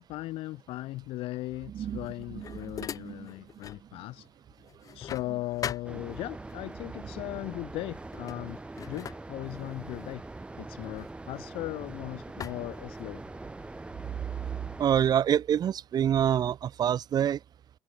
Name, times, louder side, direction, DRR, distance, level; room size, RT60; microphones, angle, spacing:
voice 1, 0.0-4.3 4.9-8.6 8.9-10.2 10.6-13.2, left 17 dB, 65° left, 3.9 m, -38 dB
sound 1, 1.9-3.9 4.2-6.6 7.4-7.7 8.0-11.9 12.4-13.5, left 8 dB, 35° left, 1.6 m, -43 dB
voice 2, 2.4-3.3 14.8-17.4, right 9 dB, 40° right, 2.0 m, -27 dB
sound 2, 5.9-14.9, right 2 dB, 10° right, 2.9 m, -43 dB
supercardioid pair, 115°, 10 cm